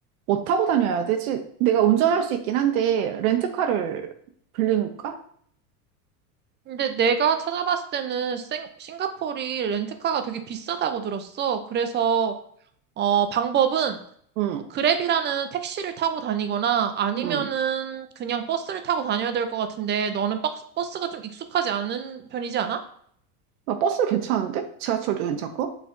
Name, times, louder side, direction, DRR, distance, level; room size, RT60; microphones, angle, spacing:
voice 1, 0.3-4.1 4.5-5.2 14.4-14.7 17.2-17.5 23.7-25.7, right 9 dB, 75° right, 5 dB, 0.7 m, -24 dB
voice 2, 6.7-12.3 13.0-14.0 14.7-22.8, right 8 dB, 25° right, 8 dB, 0.4 m, -26 dB
6.2 x 3.3 x 2.5 m, 0.62 s
supercardioid pair, 105°, 44 cm